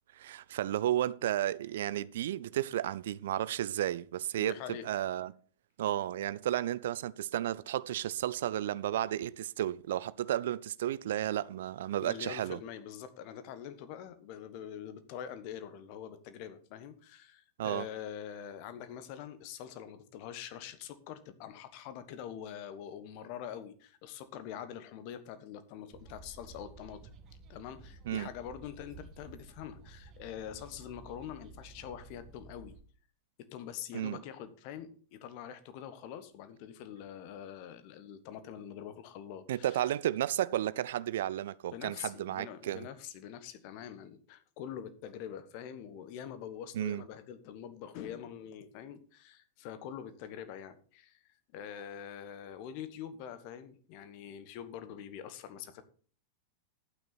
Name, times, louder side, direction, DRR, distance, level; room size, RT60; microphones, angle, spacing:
voice 1, 0.1-4.6 4.8-5.3 5.8-12.6 17.6-17.9 28.1-28.3 33.9-34.2 39.5-42.9 46.7-47.0, right 12 dB, 60° right, 0.5 m, -33 dB
voice 2, 4.4-4.9 12.0-27.0 27.5-32.8 33.4-39.8 41.7-51.2 51.5-55.8, left 9 dB, 45° left, 1.4 m, -44 dB
sound 1, 25.9-32.8, right 3 dB, 35° right, 1.6 m, -53 dB
11.5 x 9.1 x 4.1 m
figure-of-eight pair, 90°, 0 cm